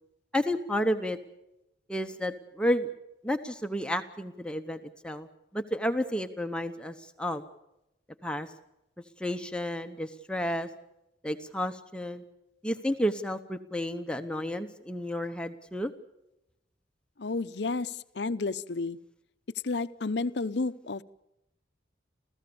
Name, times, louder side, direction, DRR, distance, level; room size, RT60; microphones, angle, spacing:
voice 1, 0.3-1.2 1.9-2.9 3.2-5.3 5.5-7.4 8.2-8.5 9.2-10.7 11.2-12.2 12.6-15.9, equal, 5° left, 6 dB, 0.9 m, -31 dB
voice 2, 17.2-19.0 19.6-21.0, left 3 dB, 70° left, 13 dB, 0.8 m, -31 dB
29.0 x 15.5 x 7.0 m, 0.89 s
head